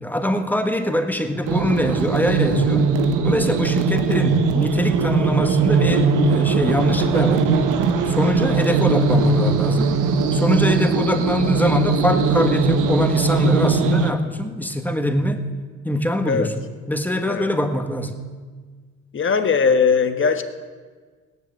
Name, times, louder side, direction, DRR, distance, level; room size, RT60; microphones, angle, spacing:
voice 1, 0.0-2.9 3.2-7.5 8.0-9.9 10.3-15.5 15.8-18.2, equal, 5° left, 7 dB, 1.5 m, -23 dB
sound 1, 1.5-14.1, right 4 dB, 90° right, 1.2 m, -19 dB
voice 2, 19.1-20.4, left 5 dB, 40° left, 8 dB, 1.4 m, -19 dB
17.0 x 11.0 x 7.9 m, 1.5 s
cardioid pair, 90°, 30 cm